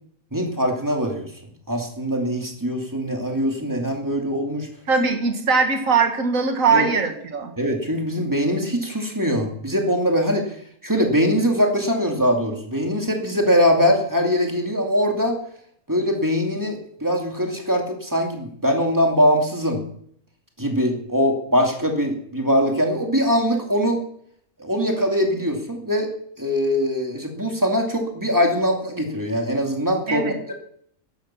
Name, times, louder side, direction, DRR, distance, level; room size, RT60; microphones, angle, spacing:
voice 1, 0.3-1.3 1.7-4.7 6.7-6.9 7.6-10.6 10.8-15.4 15.9-19.8 20.6-24.0 24.6-26.1 26.4-30.5, equal, 15° right, 1 dB, 2.4 m, -22 dB
voice 2, 4.9-7.6 30.1-30.4, right 5 dB, 65° right, 5 dB, 2.1 m, -21 dB
14.0 x 11.0 x 5.7 m, 0.65 s
omnidirectional pair, 1.5 m